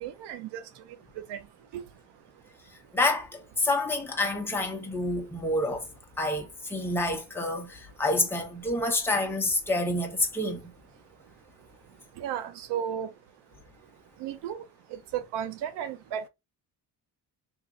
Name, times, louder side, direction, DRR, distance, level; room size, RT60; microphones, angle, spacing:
voice 1, 0.0-0.6 1.3-1.4 1.7-1.8 12.2-13.1 14.2-14.6 15.1-16.3, right 9 dB, 85° right, 0.5 m, -33 dB
voice 2, 2.9-5.9 6.2-10.6, left 2 dB, 5° left, 0.7 m, -28 dB
3.0 x 2.7 x 3.5 m
cardioid pair, 130°, 40 cm